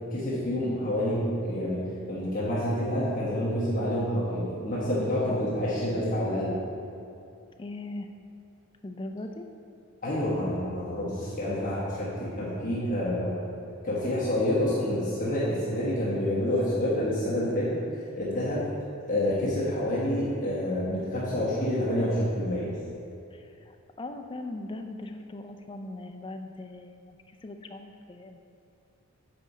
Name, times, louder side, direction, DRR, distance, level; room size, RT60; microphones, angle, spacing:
voice 1, 0.1-1.8 2.1-6.6 10.0-13.3 13.8-18.6 19.1-22.7, left 1 dB, 40° left, -9 dB, 1.3 m, -28 dB
voice 2, 7.6-8.1 8.8-9.5 23.3-27.2 27.4-28.4, left 2 dB, 25° left, 5 dB, 0.4 m, -40 dB
7.6 x 4.9 x 4.1 m, 2.6 s
head